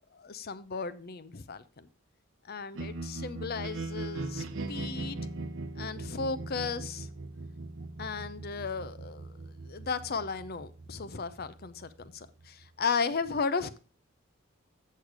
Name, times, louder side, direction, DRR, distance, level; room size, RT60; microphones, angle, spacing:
voice 1, 0.1-1.9 2.5-5.2 5.8-7.1 8.0-9.3 9.6-13.8, left 5 dB, 50° left, 0.6 m, -35 dB
sound 1, 2.7-12.8, right 2 dB, 65° right, 0.8 m, -40 dB
8.1 x 6.5 x 4.7 m
head